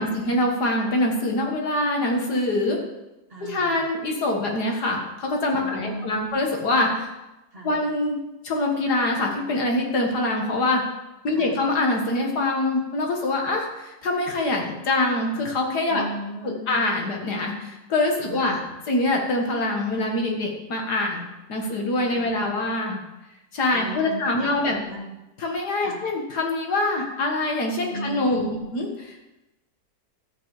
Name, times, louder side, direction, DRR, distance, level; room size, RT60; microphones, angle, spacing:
voice 1, 0.0-2.8 3.4-7.1 7.6-8.2 8.4-10.8 11.2-16.0 16.4-23.0 23.5-24.8 25.4-28.9, left 2 dB, 60° left, 0 dB, 2.2 m, -24 dB
voice 2, 3.3-3.8 5.6-6.3 7.5-7.8 11.3-11.6 15.9-16.8 18.2-18.8 22.1-22.6 23.7-25.1 25.8-26.0 27.9-28.7, right 1 dB, 30° right, -2 dB, 2.2 m, -37 dB
13.0 x 8.7 x 4.9 m, 0.99 s
omnidirectional pair, 1.9 m